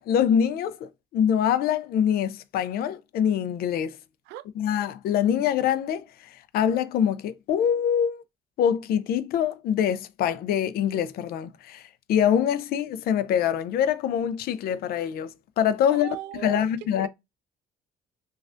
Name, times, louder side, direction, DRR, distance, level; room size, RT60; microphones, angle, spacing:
voice 1, 0.0-4.0 4.6-8.2 8.6-15.3 15.6-16.2 16.4-17.1, left 9 dB, 65° left, 0.4 m, -24 dB
voice 2, 15.8-16.7 17.0-17.1, right 11 dB, 90° right, 0.4 m, -37 dB
3.2 x 2.4 x 2.5 m
cardioid pair, 110°, 17 cm